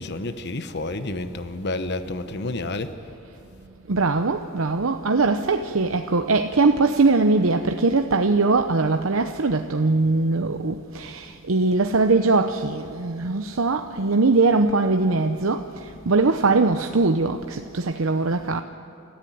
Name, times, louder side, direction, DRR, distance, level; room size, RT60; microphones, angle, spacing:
voice 1, 0.0-2.9, left 2 dB, 55° left, 10 dB, 1.1 m, -30 dB
voice 2, 3.9-15.7 16.1-18.6, right 3 dB, 90° right, 6 dB, 0.8 m, -21 dB
29.0 x 14.5 x 9.4 m, 2.8 s
head